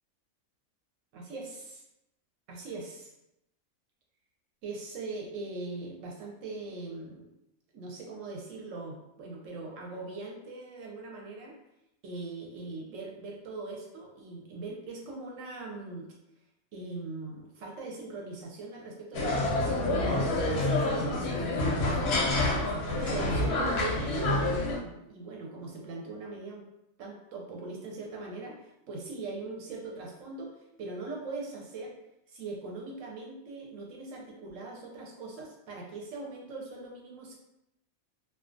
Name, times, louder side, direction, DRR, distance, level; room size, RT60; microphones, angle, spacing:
voice 1, 1.1-1.8 2.5-3.1 4.6-7.3 7.7-11.6 12.0-16.1 16.7-26.6 27.0-31.9 32.3-37.4, right 3 dB, 70° right, -1 dB, 0.9 m, -41 dB
sound 1, 19.1-24.8, left 2 dB, 65° left, 0.7 m, -27 dB
2.3 x 2.2 x 2.5 m, 0.85 s
omnidirectional pair, 1.5 m